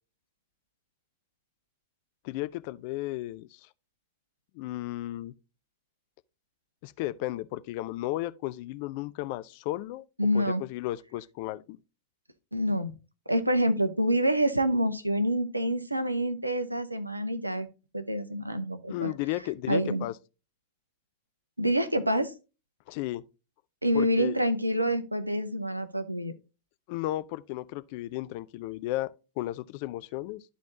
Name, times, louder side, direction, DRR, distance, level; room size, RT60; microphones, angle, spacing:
voice 1, 2.2-3.7 4.5-5.3 6.8-10.0 10.3-11.8 18.9-20.1 22.9-23.2 23.9-24.4 26.9-30.4, left 16 dB, 45° left, 0.4 m, -34 dB
voice 2, 10.2-10.6 12.5-12.9 13.3-17.7 17.9-19.1 19.7-20.1 21.6-22.3 23.8-26.3, equal, 85° right, 0.7 m, -27 dB
12.5 x 4.1 x 2.6 m
figure-of-eight pair, 90°, 0 cm